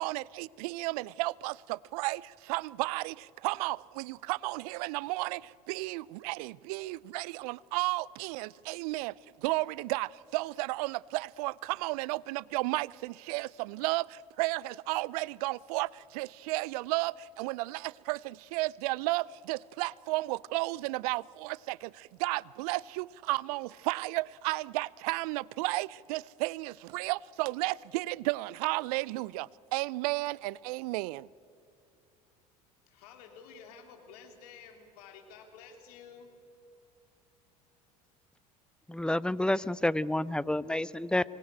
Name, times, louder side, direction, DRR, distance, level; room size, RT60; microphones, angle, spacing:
voice 1, 0.0-31.3, right 21 dB, 70° right, 0.5 m, -33 dB
voice 2, 32.9-36.3, left 6 dB, 70° left, 3.2 m, -51 dB
voice 3, 38.9-41.2, left 1 dB, 5° left, 0.6 m, -29 dB
25.0 x 19.0 x 8.8 m
hypercardioid pair, 70°, 20 cm